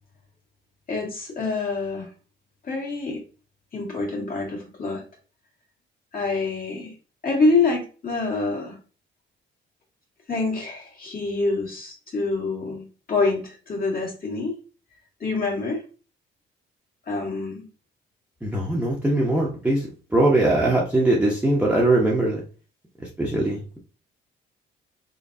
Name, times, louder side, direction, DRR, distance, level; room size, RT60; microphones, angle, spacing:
voice 1, 0.9-2.1 2.6-3.2 3.7-5.0 6.1-6.9 7.2-8.8 10.3-12.8 13.1-14.5 15.2-15.8 17.1-17.6, left 3 dB, 45° left, -1 dB, 2.0 m, -26 dB
voice 2, 18.4-22.4 23.0-23.8, right 2 dB, 5° right, -4 dB, 0.9 m, -21 dB
3.8 x 3.7 x 2.7 m, 0.36 s
cardioid pair, 90°, 20 cm